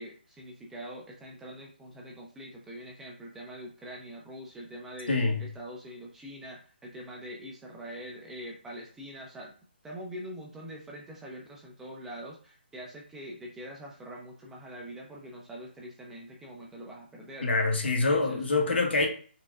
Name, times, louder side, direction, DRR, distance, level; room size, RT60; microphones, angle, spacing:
voice 1, 0.0-5.1 5.4-9.5 9.8-17.5 17.8-18.4, equal, 5° right, 0.4 m, -44 dB
voice 2, 5.1-5.4 17.4-19.1, left 3 dB, 80° left, 1.1 m, -25 dB
4.2 x 2.2 x 2.3 m
hypercardioid pair, 160°, 6 cm